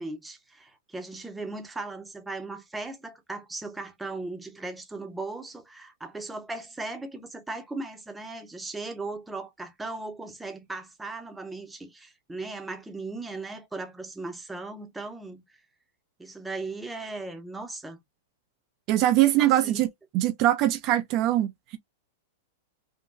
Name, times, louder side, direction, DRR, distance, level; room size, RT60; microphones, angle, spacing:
voice 1, 0.0-15.4 16.2-18.0 19.4-19.8, right 3 dB, 5° right, 0.7 m, -37 dB
voice 2, 18.9-19.9 20.1-21.8, right 14 dB, 40° right, 0.5 m, -22 dB
3.8 x 2.2 x 2.4 m
hypercardioid pair, 135°, 0 cm